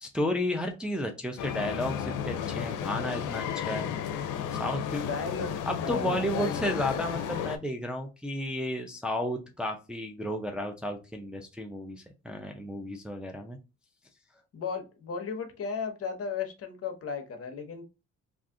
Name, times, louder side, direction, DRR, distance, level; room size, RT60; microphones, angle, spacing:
voice 1, 0.0-3.9 4.5-5.1 5.7-13.6, left 1 dB, 5° right, 3 dB, 0.5 m, -33 dB
sound 1, 1.4-7.6, left 8 dB, 80° left, 0.6 m, -33 dB
voice 2, 4.9-5.5 5.8-6.6 14.5-17.8, left 5 dB, 50° left, 6 dB, 0.9 m, -35 dB
2.5 x 2.4 x 3.6 m, 0.29 s
cardioid pair, 90°, 30 cm